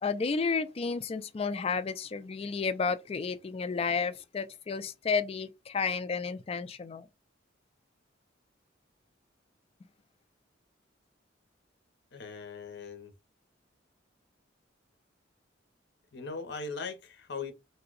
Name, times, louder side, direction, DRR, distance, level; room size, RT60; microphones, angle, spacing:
voice 1, 0.0-7.1, left 5 dB, 30° left, 0.3 m, -32 dB
voice 2, 12.1-13.1 16.1-17.5, left 4 dB, 60° left, 0.7 m, -39 dB
2.7 x 2.1 x 3.8 m
head